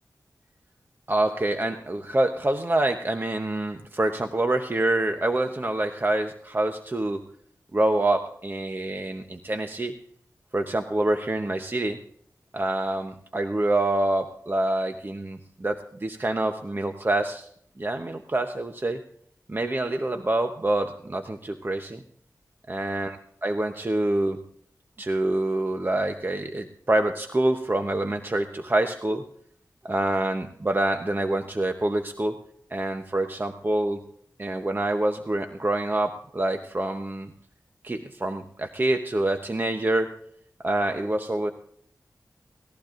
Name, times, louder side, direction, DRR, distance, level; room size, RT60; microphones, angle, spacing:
voice 1, 1.1-7.2 7.7-10.0 10.5-12.0 12.5-17.5 17.8-19.0 19.5-22.0 22.7-23.2 23.4-24.4 25.0-29.2 29.8-32.4 32.7-34.0 34.4-37.3 37.8-40.2 40.6-41.5, right 1 dB, 30° right, 5 dB, 0.8 m, -26 dB
19.0 x 14.5 x 2.5 m, 0.65 s
wide cardioid pair, 70°, 6 cm